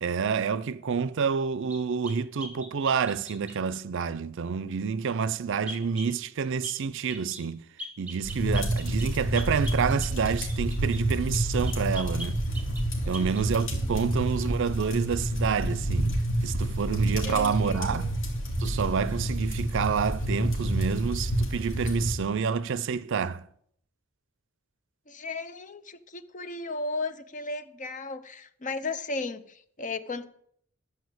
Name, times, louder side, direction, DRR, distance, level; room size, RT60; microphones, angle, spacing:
voice 1, 0.0-7.6 8.0-12.4 13.1-18.1 18.6-23.5, right 6 dB, 65° right, 0.5 m, -28 dB
sound 1, 1.7-3.6 5.7-6.1 6.6-6.8 7.1-7.5 7.8-11.0 11.6-12.9 13.1-13.5, equal, 5° right, 1.8 m, -41 dB
sound 2, 8.2-22.1, right 1 dB, 65° left, 2.8 m, -29 dB
voice 2, 13.0-13.6 17.2-18.1 25.1-30.2, left 3 dB, 40° left, 0.7 m, -35 dB
11.5 x 4.9 x 7.9 m
head